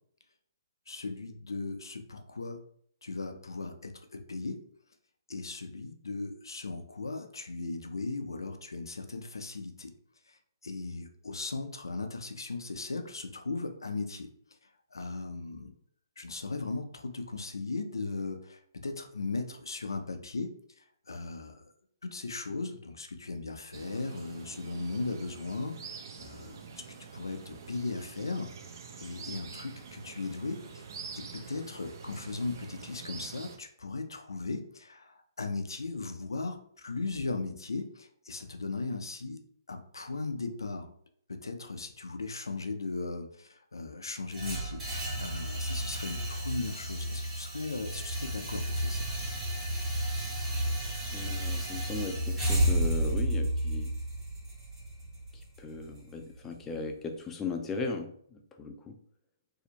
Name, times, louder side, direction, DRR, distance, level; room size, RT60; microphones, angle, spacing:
voice 1, 0.9-2.6 3.0-4.6 5.3-9.9 10.3-14.3 14.6-15.7 16.2-20.5 20.8-21.7 22.0-26.8 27.1-28.5 29.0-30.9 31.2-39.4 39.7-40.9 41.3-44.8 45.2-49.1, left 3 dB, 85° left, 6 dB, 0.4 m, -37 dB
sound 1, 23.7-33.6, right 5 dB, 55° right, 0.4 m, -46 dB
sound 2, 44.3-56.4, right 1 dB, 15° right, 1.4 m, -32 dB
voice 2, 51.1-53.9 55.6-59.0, left 4 dB, 15° left, 3 dB, 0.3 m, -37 dB
2.6 x 2.0 x 2.8 m, 0.62 s
hypercardioid pair, 140°, 2 cm